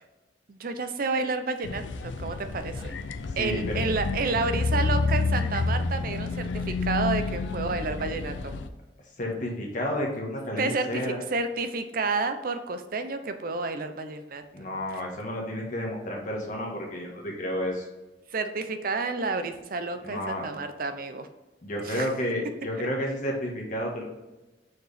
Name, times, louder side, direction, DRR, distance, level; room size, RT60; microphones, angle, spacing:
voice 1, 0.5-3.0 3.4-8.5 10.5-14.4 18.3-21.3 21.8-22.1, right 3 dB, 50° right, 9 dB, 0.6 m, -30 dB
sound 1, 1.6-8.7, left 3 dB, 85° left, 0.5 m, -29 dB
voice 2, 3.2-3.8 9.2-11.2 14.5-17.9 20.0-20.4 21.6-24.0, left 1 dB, 45° left, -1 dB, 1.5 m, -31 dB
6.4 x 4.7 x 3.4 m, 1.1 s
head